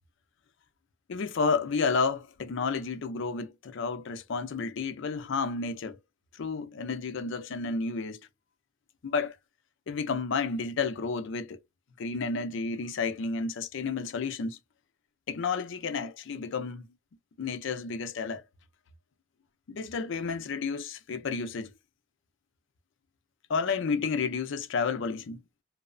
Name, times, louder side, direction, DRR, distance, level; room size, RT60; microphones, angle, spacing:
voice 1, 1.1-6.0 6.3-8.3 9.0-9.4 9.9-11.6 12.0-14.6 15.3-16.9 17.4-18.4 19.7-21.7 23.5-25.4, left 4 dB, 65° left, 0.4 m, -31 dB
2.7 x 2.0 x 2.5 m
head